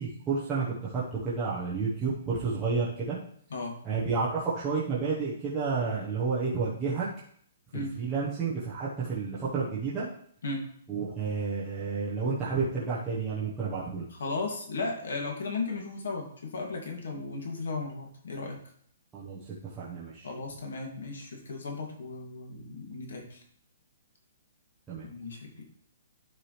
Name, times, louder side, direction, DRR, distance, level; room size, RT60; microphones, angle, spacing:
voice 1, 0.0-3.2 3.8-7.1 7.7-10.1 10.9-14.0 19.1-19.4 19.8-20.3 24.9-25.1, right 4 dB, 10° right, -10 dB, 1.1 m, -30 dB
voice 2, 14.1-18.6 20.2-23.4 25.0-25.6, left 3 dB, 85° left, 1 dB, 2.3 m, -35 dB
12.0 x 4.9 x 3.3 m, 0.64 s
hypercardioid pair, 180°, 0 cm